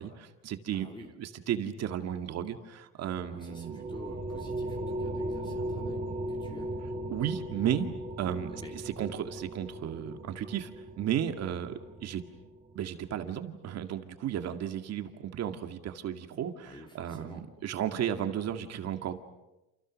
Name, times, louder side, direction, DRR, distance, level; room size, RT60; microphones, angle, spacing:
voice 1, 0.0-0.9 1.2-3.9 7.1-8.6 9.0-10.7 11.0-12.2 12.7-19.2, right 10 dB, 50° right, 7 dB, 2.2 m, -34 dB
voice 2, 0.7-1.1 3.3-6.0 6.3-6.8 8.5-8.7 16.6-17.4, left 1 dB, 15° left, 2 dB, 3.0 m, -49 dB
sound 1, 3.1-12.8, right 1 dB, 20° right, 3.5 m, -38 dB
29.5 x 29.0 x 6.5 m, 0.98 s
cardioid pair, 150°, 34 cm